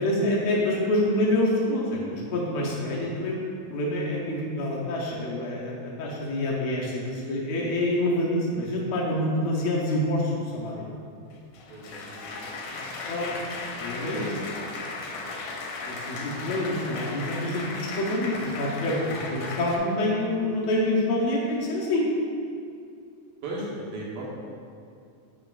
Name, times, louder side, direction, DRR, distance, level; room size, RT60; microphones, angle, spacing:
voice 1, 0.0-3.4 3.7-10.9 13.1-13.3 13.8-14.3 15.9-22.1, left 1 dB, 70° left, -4 dB, 1.7 m, -27 dB
Applause, 11.3-19.8, left 3 dB, 85° left, 2.3 m, -36 dB
voice 2, 11.7-13.7 14.2-15.4 23.4-24.3, right 1 dB, 85° right, -4 dB, 2.8 m, -40 dB
7.3 x 5.8 x 2.4 m, 2.4 s
omnidirectional pair, 3.8 m